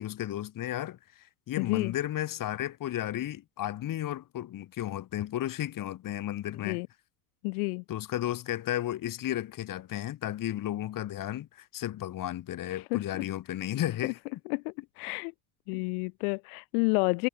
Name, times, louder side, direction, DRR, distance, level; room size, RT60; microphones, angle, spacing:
voice 1, 0.0-6.8 7.9-14.2 15.7-15.8, left 13 dB, 45° left, 2.1 m, -33 dB
voice 2, 1.6-1.9 6.6-6.9 7.4-7.8 12.9-13.0 14.5-15.3 15.7-17.3, left 36 dB, 75° left, 0.9 m, -29 dB
supercardioid pair, 90°, 45 cm